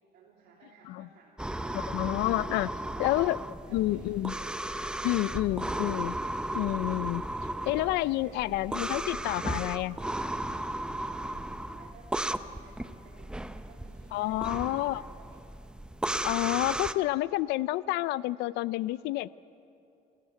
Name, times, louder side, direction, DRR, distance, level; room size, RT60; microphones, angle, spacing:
voice 1, 0.1-1.9 2.7-3.2 3.6-4.5 8.2-8.5 11.1-15.5, right 5 dB, 70° right, -3 dB, 3.3 m, -57 dB
sound 1, 1.4-16.9, right 1 dB, 5° right, 0.7 m, -35 dB
voice 2, 1.7-2.7 3.0-3.4 3.7-4.3 5.0-6.2 6.5-7.2 7.7-10.0 14.1-15.0 16.2-19.4, left 17 dB, 90° left, 19 dB, 0.5 m, -29 dB
29.5 x 13.5 x 9.3 m, 2.7 s
cardioid pair, 110°, 17 cm